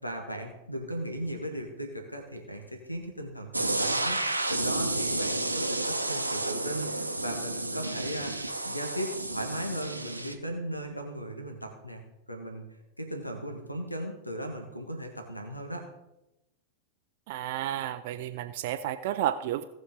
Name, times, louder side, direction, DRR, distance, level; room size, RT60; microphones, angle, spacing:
voice 1, 0.0-8.3 8.6-12.0 12.3-12.6 13.0-15.8, equal, 90° left, 4 dB, 1.7 m, -37 dB
sound 1, 3.5-10.3, right 2 dB, 85° right, 0.9 m, -31 dB
voice 2, 17.3-19.6, right 12 dB, 50° right, 8 dB, 0.5 m, -31 dB
17.5 x 6.2 x 3.7 m, 0.91 s
figure-of-eight pair, 90°, 0 cm